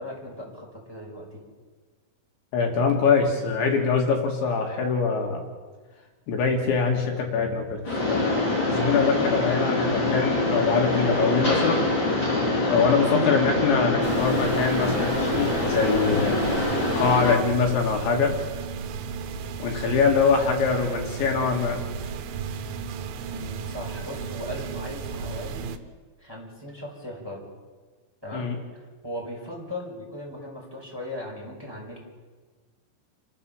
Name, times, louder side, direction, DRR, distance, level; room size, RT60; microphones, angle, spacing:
voice 1, 0.0-1.4 23.3-25.6 26.2-27.5 28.2-28.5 29.0-32.0, left 1 dB, 5° right, -2 dB, 5.2 m, -37 dB
voice 2, 2.5-5.4 6.3-7.8 8.1-11.8 12.7-16.4 17.0-18.3 19.6-21.8 28.3-28.6, left 5 dB, 70° left, 1 dB, 4.2 m, -23 dB
Mechanisms, 7.8-17.3, left 2 dB, 25° left, 5.5 m, -24 dB
sound 1, 14.0-25.8, right 6 dB, 85° right, 3.7 m, -34 dB
29.5 x 13.5 x 7.2 m, 1.4 s
omnidirectional pair, 5.7 m